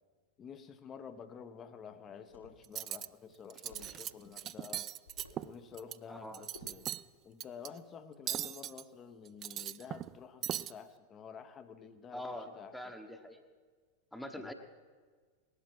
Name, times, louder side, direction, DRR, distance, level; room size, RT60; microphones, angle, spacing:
voice 1, 0.4-4.9 5.4-6.9 7.2-12.8 14.4-14.5, left 6 dB, 25° left, 11 dB, 0.8 m, -50 dB
sound 1, 2.2-2.6 3.7-4.0 5.0-5.5 6.5-6.9, left 3 dB, 75° left, 2.5 m, -54 dB
Cutlery silverware, 2.6-3.1 3.5-4.1 4.4-6.0 6.3-7.0 7.4-7.7 8.3-8.8 9.3-10.1 10.4-10.7, right 12 dB, 30° right, 0.3 m, -39 dB
voice 2, 6.1-6.4 12.1-13.4 14.1-14.5, left 1 dB, 5° left, 5 dB, 1.1 m, -44 dB
19.5 x 11.5 x 4.7 m, 1.5 s
figure-of-eight pair, 90°, 0 cm